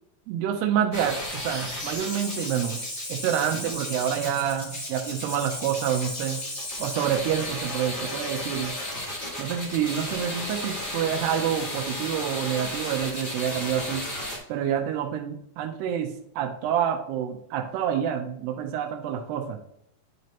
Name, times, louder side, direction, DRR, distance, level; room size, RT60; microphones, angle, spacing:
voice 1, 0.3-2.8 3.1-6.4 6.8-8.7 9.4-14.1 14.5-19.6, right 9 dB, 80° right, 4 dB, 2.8 m, -28 dB
sound 1, 0.9-14.4, left 1 dB, 35° left, 0.8 m, -34 dB
10.5 x 6.2 x 2.9 m, 0.74 s
omnidirectional pair, 4.7 m